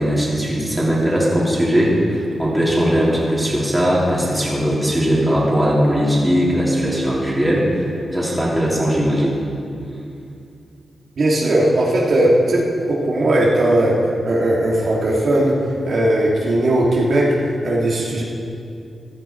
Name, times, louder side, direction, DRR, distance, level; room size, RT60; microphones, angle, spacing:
voice 1, 0.0-7.7 8.1-9.4, equal, 5° right, -5 dB, 3.3 m, -19 dB
voice 2, 11.2-12.6 12.9-13.9 14.2-15.6 15.9-17.3 17.6-18.2, right 1 dB, 60° right, -4 dB, 2.4 m, -17 dB
15.0 x 12.5 x 4.5 m, 2.5 s
wide cardioid pair, 100°, 0 cm